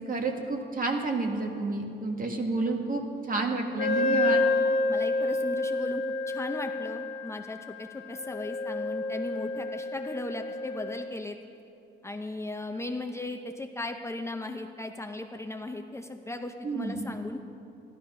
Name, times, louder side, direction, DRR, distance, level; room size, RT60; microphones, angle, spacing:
voice 1, 0.1-4.4 16.6-17.1, right 3 dB, 45° right, 2 dB, 1.9 m, -30 dB
Wind instrument woodwind instrument, 3.8-11.1, left 2 dB, 75° left, 1.4 m, -29 dB
voice 2, 4.9-11.4 12.0-17.4, left 2 dB, 15° left, 5 dB, 0.7 m, -37 dB
14.0 x 12.5 x 5.7 m, 2.7 s
cardioid pair, 90°, 20 cm